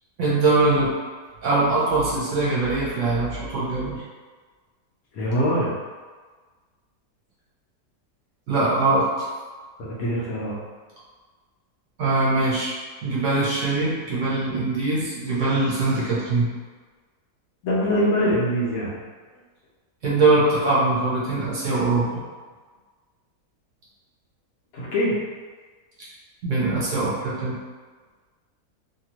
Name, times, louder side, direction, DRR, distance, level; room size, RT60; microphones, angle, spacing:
voice 1, 0.2-0.9 1.4-4.0 8.5-9.3 12.0-12.7 13.0-16.5 20.0-22.2 26.0-26.1 26.4-27.5, right 3 dB, 60° right, -8 dB, 1.0 m, -22 dB
voice 2, 5.1-5.7 9.8-10.6 17.6-19.0 24.7-25.1, equal, 70° left, -6 dB, 1.2 m, -23 dB
2.9 x 2.4 x 2.9 m, 1.4 s
omnidirectional pair, 1.7 m